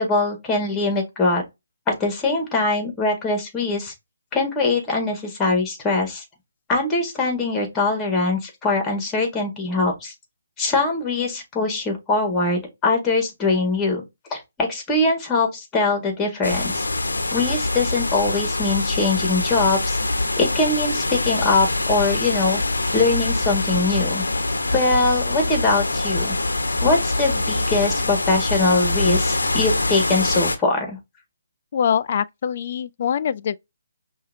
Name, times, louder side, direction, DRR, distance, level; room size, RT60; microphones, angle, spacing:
voice 1, 0.0-1.4 1.9-3.9 4.3-6.2 6.7-10.1 10.6-14.0 14.3-16.9 17.3-20.0 20.4-22.6 22.9-24.2 24.7-26.3 26.8-31.0, left 3 dB, 15° left, 1.7 m, -22 dB
sound 1, 16.4-30.6, left 2 dB, 80° left, 0.8 m, -24 dB
voice 2, 31.7-33.6, left 8 dB, 45° left, 0.3 m, -23 dB
5.6 x 2.7 x 2.7 m
figure-of-eight pair, 145°, 0 cm